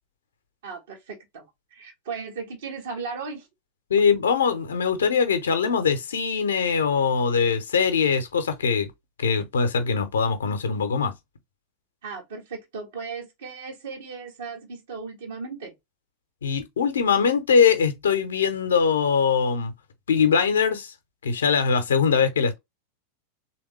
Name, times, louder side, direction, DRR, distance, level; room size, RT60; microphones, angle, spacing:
voice 1, 0.6-3.5 12.0-15.7, right 5 dB, 60° right, 1.4 m, -36 dB
voice 2, 3.9-8.9 9.2-11.1 16.4-19.7 20.1-20.9 21.2-22.6, left 6 dB, 70° left, 0.8 m, -22 dB
3.5 x 2.9 x 3.2 m
figure-of-eight pair, 90°, 0 cm